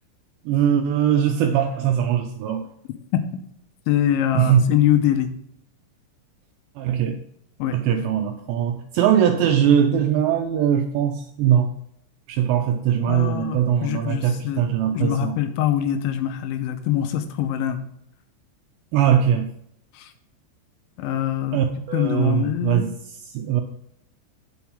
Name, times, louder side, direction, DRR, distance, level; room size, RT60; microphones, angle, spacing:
voice 1, 0.5-2.7 4.3-4.6 6.8-7.2 7.7-11.8 12.3-15.4 18.9-19.5 21.5-22.9 23.3-23.6, right 9 dB, 85° right, 5 dB, 2.5 m, -21 dB
voice 2, 3.9-5.3 7.6-7.8 13.1-14.7 14.9-17.8 19.9-20.1 21.0-21.6 21.9-22.9, left 11 dB, 85° left, 8 dB, 2.9 m, -23 dB
9.2 x 7.1 x 3.4 m, 0.74 s
omnidirectional pair, 5.6 m